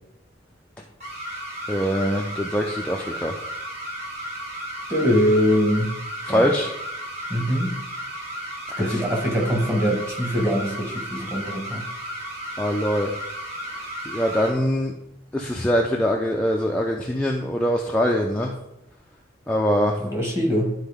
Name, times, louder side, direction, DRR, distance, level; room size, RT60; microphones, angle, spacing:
sound 1, 1.0-14.5, right 1 dB, 35° right, 2.2 m, -34 dB
voice 1, 1.7-3.3 6.3-6.7 8.7-9.0 12.6-13.1 14.1-14.9 15.3-18.5 19.5-20.0, equal, 5° left, -1 dB, 0.5 m, -23 dB
voice 2, 4.9-5.9 6.3-6.5 7.3-7.8 8.8-11.8 20.0-20.7, equal, 15° right, -2 dB, 1.5 m, -22 dB
11.5 x 4.1 x 3.6 m, 0.86 s
head